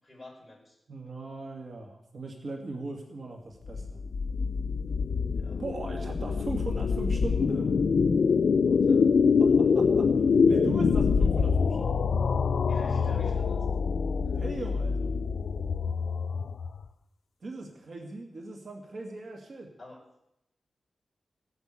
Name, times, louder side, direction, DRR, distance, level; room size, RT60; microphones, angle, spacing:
voice 1, 0.0-0.8 5.3-5.6 8.6-9.1 12.7-13.7 14.3-14.4 19.8-20.0, left 1 dB, 10° left, -2 dB, 5.5 m, -48 dB
voice 2, 0.9-4.0 5.6-7.8 9.4-10.1 10.5-12.0 14.3-15.2 17.4-19.7, right 2 dB, 60° right, 1 dB, 2.3 m, -39 dB
sound 1, 3.7-16.9, left 5 dB, 70° left, 0.5 m, -25 dB
17.5 x 8.3 x 8.4 m, 0.81 s
wide cardioid pair, 140°, 0 cm